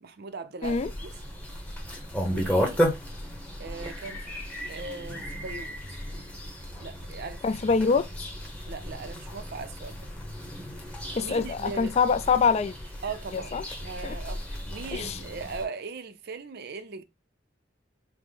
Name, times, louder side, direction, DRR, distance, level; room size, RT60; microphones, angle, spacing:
voice 1, 0.0-1.1 2.3-2.8 3.6-4.3 4.7-6.0 6.8-7.5 8.6-10.1 11.2-11.9 13.0-13.5 13.8-17.0, right 4 dB, 55° right, 0.5 m, -39 dB
sound 1, 0.6-15.6, equal, 5° left, 0.9 m, -34 dB
voice 2, 7.4-8.3 11.2-12.7 13.3-13.6 14.0-14.2 14.9-15.2, left 5 dB, 35° left, 0.3 m, -25 dB
4.9 x 2.1 x 3.7 m
head